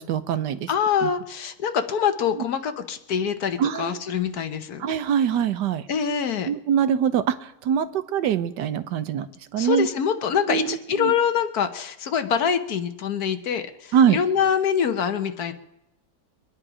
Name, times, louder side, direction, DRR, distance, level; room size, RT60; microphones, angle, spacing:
voice 1, 0.0-0.7 1.0-1.1 3.6-4.0 4.8-5.8 6.5-9.3 9.5-9.9 10.5-11.1 13.9-14.2, right 8 dB, 80° right, 12 dB, 1.4 m, -23 dB
voice 2, 0.7-4.8 5.9-6.5 9.6-15.5, left 7 dB, 65° left, 9 dB, 1.4 m, -25 dB
24.0 x 10.0 x 5.0 m, 0.87 s
omnidirectional pair, 1.8 m